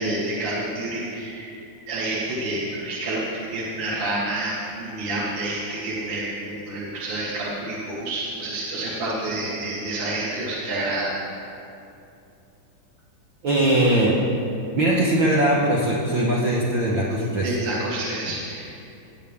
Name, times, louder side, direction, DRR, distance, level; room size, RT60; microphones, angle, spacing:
voice 1, 0.0-1.6 1.9-11.1 17.4-18.6, right 2 dB, 45° right, -7 dB, 2.0 m, -28 dB
voice 2, 13.4-14.2 14.8-17.5, right 1 dB, 65° right, -5 dB, 1.2 m, -20 dB
18.0 x 8.9 x 3.5 m, 2.7 s
omnidirectional pair, 3.6 m